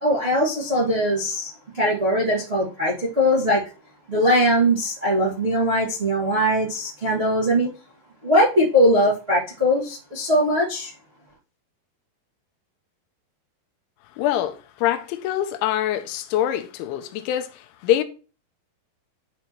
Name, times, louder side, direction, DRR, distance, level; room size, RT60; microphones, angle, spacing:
voice 1, 0.0-3.6 4.1-7.7 8.2-10.9, equal, 80° right, 0.5 m, -21 dB
voice 2, 14.2-18.0, left 12 dB, 90° left, 3.0 m, -24 dB
11.5 x 4.3 x 3.1 m
omnidirectional pair, 5.4 m